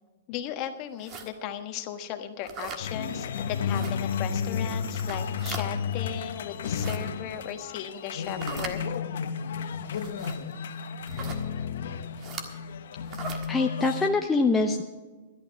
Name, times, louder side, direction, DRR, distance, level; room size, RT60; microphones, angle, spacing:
voice 1, 0.3-9.0, left 9 dB, 35° left, 7 dB, 1.3 m, -36 dB
sound 1, 1.0-1.3 2.4-2.8 3.7-3.9 4.9-5.7 6.5-7.0 8.2-8.8 9.9-10.4 11.1-11.4 12.2-12.5 13.1-13.5, right 5 dB, 30° right, 1.5 m, -39 dB
sound 2, 2.8-14.1, left 6 dB, 75° left, 1.1 m, -32 dB
voice 2, 13.5-14.8, left 3 dB, 10° left, 2 dB, 0.6 m, -24 dB
13.0 x 11.5 x 5.1 m, 1.3 s
hypercardioid pair, 150°, 0 cm